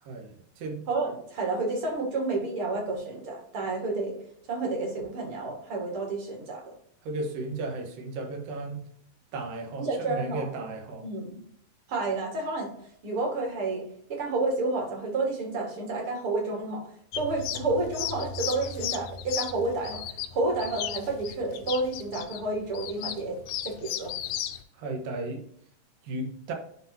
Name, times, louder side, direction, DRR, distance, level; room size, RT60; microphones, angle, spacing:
voice 1, 0.0-0.8 7.0-8.9 9.3-11.1 24.7-25.4 26.0-26.5, right 2 dB, 90° right, 2 dB, 3.0 m, -35 dB
voice 2, 0.9-4.1 4.5-6.6 9.8-10.5 11.0-11.4 11.9-12.7 13.0-13.8 14.1-16.8 17.1-20.0 20.3-23.4 23.6-24.1, right 3 dB, 45° right, 0 dB, 2.4 m, -30 dB
sound 1, 17.1-24.6, left 10 dB, 85° left, 2.3 m, -35 dB
11.0 x 4.0 x 2.8 m, 0.69 s
omnidirectional pair, 3.9 m